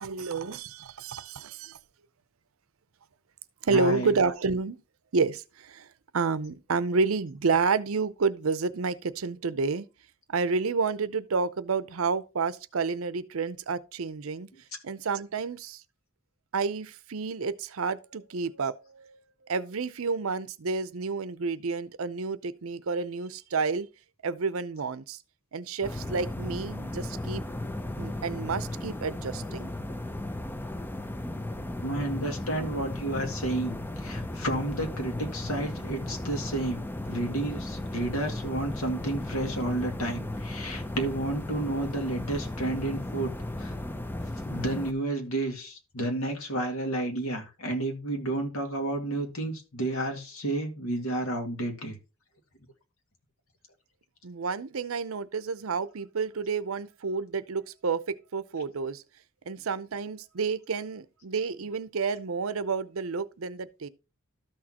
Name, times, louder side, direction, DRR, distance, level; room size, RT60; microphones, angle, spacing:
voice 1, 0.0-1.8 3.6-4.8 5.1-5.9 6.1-9.9 10.3-14.5 14.8-15.8 16.5-19.2 19.5-23.9 24.2-25.2 25.5-27.4 28.0-29.7 54.2-59.0 59.5-63.9, right 4 dB, 70° right, 0.6 m, -30 dB
voice 2, 3.7-4.1 31.8-43.3 43.6-43.7 44.5-52.0, right 1 dB, 75° left, 2.1 m, -31 dB
sound 1, 25.8-44.9, left 1 dB, 10° left, 0.5 m, -35 dB
13.0 x 6.4 x 2.9 m
head